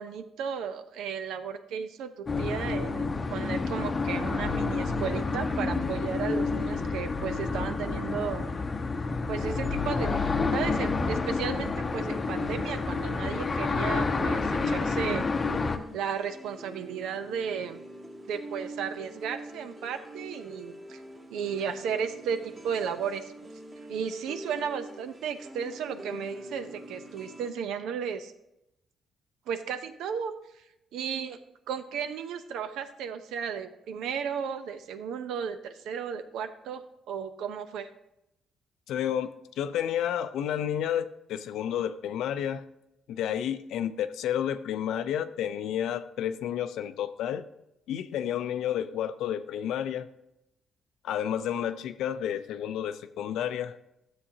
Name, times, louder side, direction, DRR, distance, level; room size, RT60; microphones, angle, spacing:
voice 1, 0.0-8.5 9.3-15.3 15.9-17.8 18.3-21.0 21.3-23.3 23.9-28.3 29.5-30.6 30.9-31.4 31.7-37.9, right 7 dB, 85° right, 10 dB, 0.7 m, -34 dB
sound 1, 2.3-15.8, left 4 dB, 30° left, 0.7 m, -29 dB
sound 2, 12.4-27.5, right 1 dB, 30° right, 2.2 m, -45 dB
voice 2, 38.9-42.6 43.1-47.5 47.9-50.1 51.0-53.8, left 10 dB, 85° left, 11 dB, 0.5 m, -31 dB
12.5 x 7.4 x 2.8 m, 0.86 s
cardioid pair, 90°, 0 cm